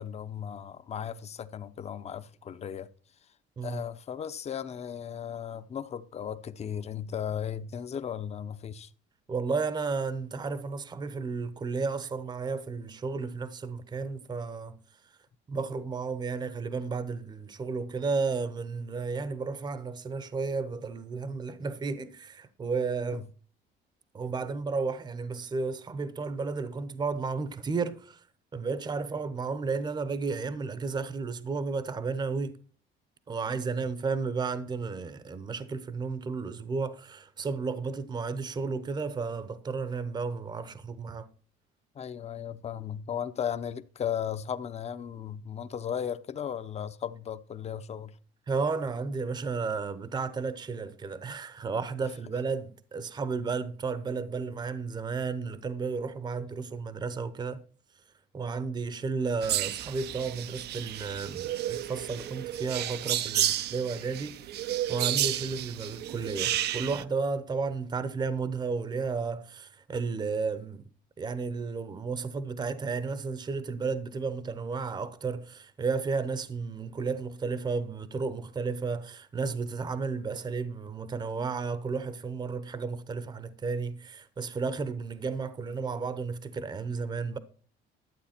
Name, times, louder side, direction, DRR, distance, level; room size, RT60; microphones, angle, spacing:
voice 1, 0.0-2.9 3.6-8.9 23.1-23.2 41.9-48.1, left 8 dB, 35° left, 0.8 m, -36 dB
voice 2, 9.3-14.8 15.5-23.3 24.1-28.2 28.5-32.5 33.3-41.3 48.5-57.6 58.3-70.8 71.2-87.4, right 4 dB, 20° right, 0.8 m, -33 dB
sound 1, 59.4-67.0, right 12 dB, 60° right, 0.6 m, -32 dB
12.5 x 8.1 x 4.3 m
cardioid pair, 140°, 19 cm